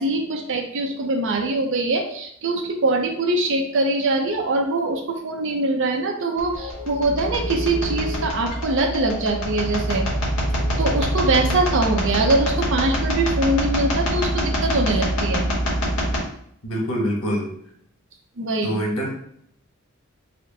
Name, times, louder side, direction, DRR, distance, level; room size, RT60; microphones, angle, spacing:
voice 1, 0.0-10.1 10.8-15.5 18.4-18.8, right 2 dB, 65° right, 2 dB, 0.7 m, -23 dB
sound 1, 6.4-16.2, equal, 70° left, 1.4 m, -25 dB
voice 2, 16.6-17.5 18.6-19.1, equal, 85° left, -1 dB, 1.3 m, -24 dB
4.2 x 2.1 x 3.9 m, 0.69 s
head